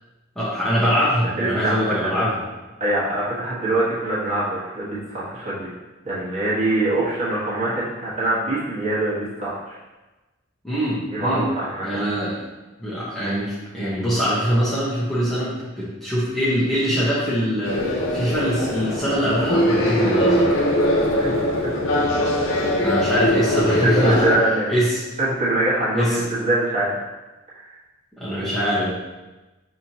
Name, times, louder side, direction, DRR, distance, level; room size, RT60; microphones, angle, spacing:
voice 1, 0.4-2.4 10.6-11.5 11.8-12.4 12.8-20.5 22.8-24.2 24.7-25.0 25.9-26.2 28.2-29.0, equal, ahead, -10 dB, 0.9 m, -23 dB
voice 2, 1.4-2.2 2.8-5.7 6.0-9.8 11.1-12.1 21.2-21.3 22.1-22.2 23.8-24.7 25.2-27.0 27.7-27.8, right 2 dB, 35° right, -9 dB, 1.4 m, -23 dB
sound 1, 17.6-24.3, left 1 dB, 70° left, 0.7 m, -21 dB
6.1 x 2.9 x 2.8 m, 1.1 s
head